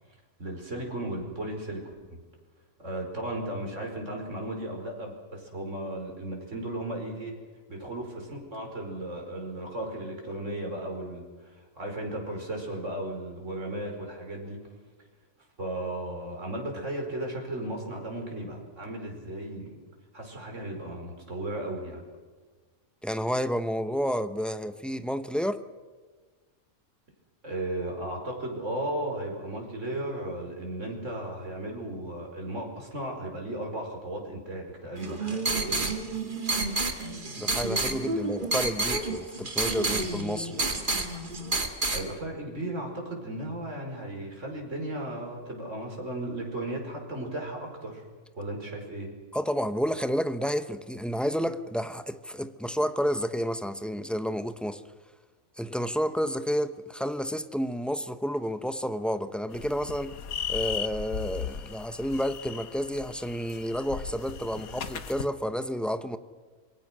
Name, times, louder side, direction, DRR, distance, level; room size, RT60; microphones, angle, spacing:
voice 1, 0.4-1.8 2.1-2.2 2.8-7.4 7.7-14.6 15.6-19.8 20.1-22.0 27.4-35.8 41.9-48.0 48.4-49.1, right 1 dB, 55° right, 5.4 m, -35 dB
voice 2, 23.0-25.6 37.4-40.7 49.3-54.8 55.6-60.1 60.5-66.2, equal, ahead, 0.7 m, -30 dB
sound 1, 35.0-42.0, right 2 dB, 35° right, 2.0 m, -29 dB
sound 2, 59.5-65.3, left 7 dB, 80° left, 1.6 m, -37 dB
27.0 x 22.5 x 6.3 m
omnidirectional pair, 1.5 m